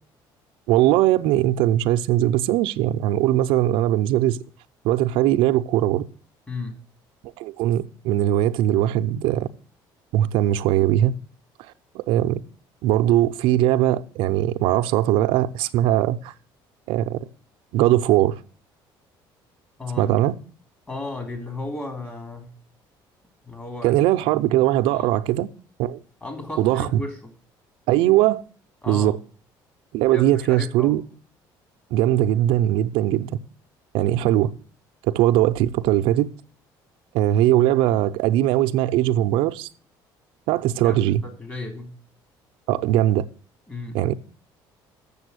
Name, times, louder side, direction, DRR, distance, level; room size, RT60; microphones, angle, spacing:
voice 1, 0.7-4.4 4.8-6.1 7.4-9.5 10.1-11.2 11.9-12.4 12.8-16.3 16.9-17.2 17.7-18.4 20.0-20.3 23.8-25.5 25.8-26.0 26.6-27.0 27.9-28.4 28.9-29.2 29.9-31.0 31.9-33.4 33.9-34.5 35.1-36.3 37.1-39.7 40.5-41.2 42.7-43.3 43.9-44.1, right 13 dB, 85° right, 0.6 m, -20 dB
voice 2, 6.5-6.8 19.8-20.1 20.9-22.5 23.5-23.9 24.9-25.1 26.2-27.3 28.8-29.2 30.1-31.0 40.8-41.9 43.7-44.0, left 2 dB, 20° left, 3.2 m, -34 dB
7.1 x 6.9 x 8.1 m
cardioid pair, 115°, 9 cm